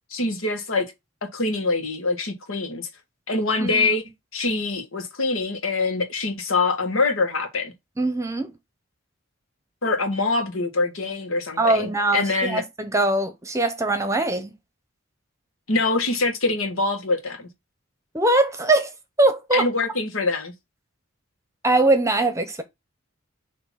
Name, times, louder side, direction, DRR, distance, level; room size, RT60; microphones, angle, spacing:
voice 1, 0.1-0.9 1.3-2.9 3.3-4.0 4.3-7.7 9.8-12.6 15.7-17.5 19.5-20.5, left 3 dB, 75° left, 1.7 m, -24 dB
voice 2, 3.6-3.9 8.0-8.5 11.6-14.5 18.1-18.9 19.2-19.7 21.6-22.6, right 2 dB, 15° right, 0.9 m, -21 dB
6.8 x 3.0 x 5.7 m
head